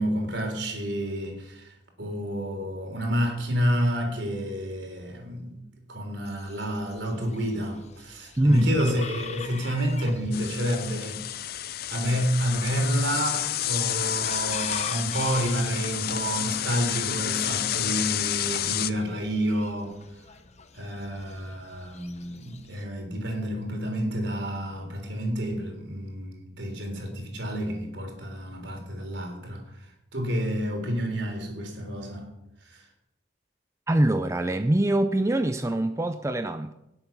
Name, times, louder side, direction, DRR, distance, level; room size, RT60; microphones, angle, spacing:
voice 1, 0.0-5.6 5.9-11.3 11.9-20.4 20.7-32.9, equal, 65° right, 3.6 m, -29 dB
Chicken rooster, 6.2-22.8, left 6 dB, 35° left, 0.9 m, -44 dB
voice 2, 8.4-8.8 33.9-36.7, right 1 dB, 15° right, 0.5 m, -24 dB
sound 1, 10.3-18.9, left 12 dB, 50° left, 0.5 m, -30 dB
18.0 x 7.9 x 6.0 m
head